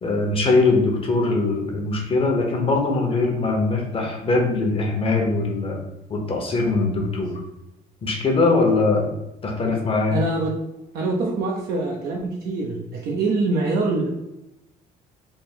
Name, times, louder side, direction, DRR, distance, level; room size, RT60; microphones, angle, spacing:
voice 1, 0.0-5.8 6.1-7.3 8.0-9.1 9.4-10.2, left 3 dB, 35° left, 1 dB, 0.9 m, -21 dB
voice 2, 10.1-10.5 10.9-14.1, right 3 dB, 65° right, -2 dB, 0.7 m, -24 dB
3.5 x 2.1 x 4.3 m, 0.90 s
cardioid pair, 110°, 17 cm